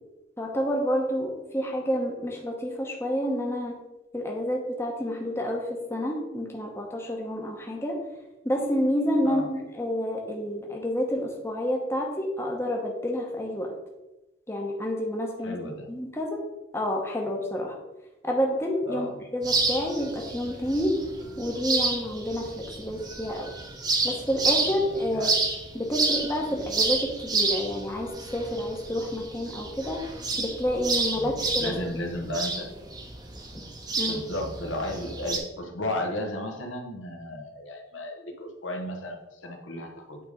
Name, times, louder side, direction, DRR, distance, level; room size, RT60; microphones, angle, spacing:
voice 1, 0.4-3.7 4.1-8.0 8.4-13.7 14.5-16.4 16.7-17.7 18.2-21.0 21.4-23.5 24.0-25.3 25.7-30.0 30.4-31.8 33.5-33.6 34.0-34.2, equal, 15° left, 0 dB, 0.9 m, -29 dB
voice 2, 15.4-15.9 18.9-19.2 25.1-25.4 31.1-32.7 34.1-40.2, left 1 dB, 75° left, 2 dB, 1.2 m, -34 dB
sound 1, 19.4-35.4, right 3 dB, 20° right, 0.8 m, -30 dB
8.8 x 3.5 x 5.0 m, 1.0 s
head